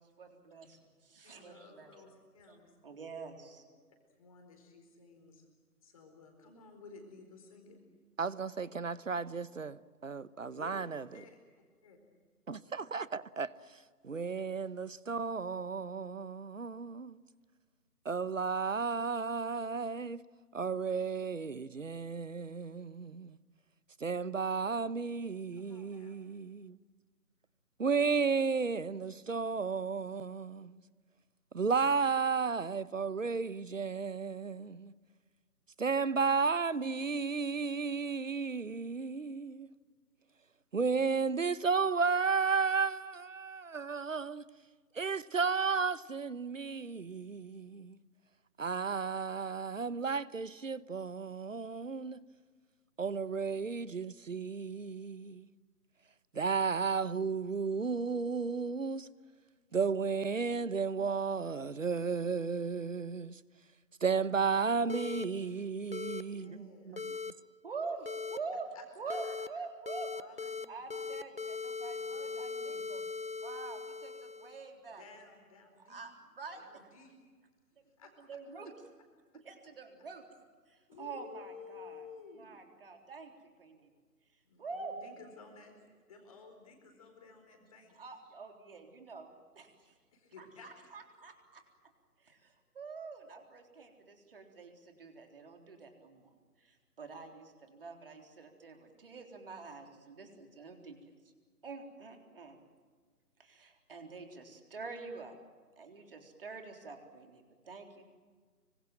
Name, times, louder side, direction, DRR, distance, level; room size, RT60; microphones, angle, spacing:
voice 1, 0.0-2.0 2.5-2.6 2.8-3.6 67.6-68.7 69.0-70.1 70.7-73.0 73.4-75.1 75.9-76.6 78.2-78.7 79.3-80.3 80.7-82.1 82.4-83.3 83.6-83.9 84.6-84.9 87.9-90.0 90.4-91.6 92.2-96.3 96.6-101.1 101.6-102.6 103.4-105.4 105.8-108.1, right 4 dB, 35° right, 3.8 m, -46 dB
voice 2, 1.2-2.7 3.6-3.7 4.2-5.5 5.8-7.8 10.5-10.9 11.1-11.4 11.8-12.0 25.5-26.2 66.3-67.2 68.7-69.5 70.2-71.1 72.0-72.9 75.0-76.0 76.6-77.1 78.0-78.1 80.9-82.5 84.4-85.7 86.1-88.0 90.1-90.7, left 5 dB, 20° left, 4.3 m, -54 dB
voice 3, 8.2-11.0 12.5-13.5 14.0-17.2 18.0-20.2 20.5-23.4 24.0-26.8 27.8-30.8 31.5-34.9 35.8-39.7 40.7-44.4 44.9-48.0 48.6-52.2 53.0-55.4 56.3-59.1 59.7-63.4 64.0-67.1, right 5 dB, 55° right, 1.0 m, -33 dB
sound 1, 64.9-65.2 65.9-66.2 67.0-67.3 68.1-68.4 69.1-69.5 69.9-70.6 70.9-74.6, left 4 dB, 35° left, 0.8 m, -39 dB
26.0 x 25.0 x 7.7 m
figure-of-eight pair, 165°, 47 cm